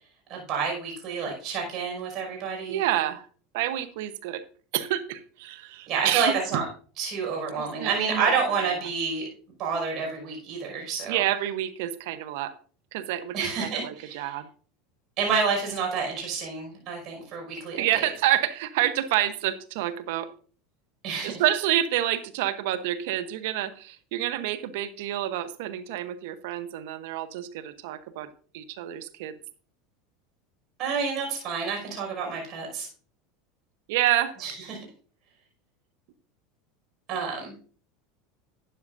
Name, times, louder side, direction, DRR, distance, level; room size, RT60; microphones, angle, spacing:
voice 1, 0.3-2.8 5.9-6.7 7.0-9.3 9.6-11.2 13.3-14.3 15.2-18.1 21.0-21.4 30.8-32.9 34.4-34.8 37.1-37.5, right 5 dB, 50° right, 1 dB, 5.5 m, -29 dB
voice 2, 2.7-3.2 3.5-4.4 4.7-6.6 7.6-8.3 8.6-8.7 11.1-12.5 12.9-14.5 17.8-20.3 21.2-28.3 28.5-29.4 33.9-34.3, right 13 dB, 70° right, 12 dB, 0.9 m, -28 dB
12.0 x 9.7 x 2.6 m, 0.41 s
hypercardioid pair, 100°, 0 cm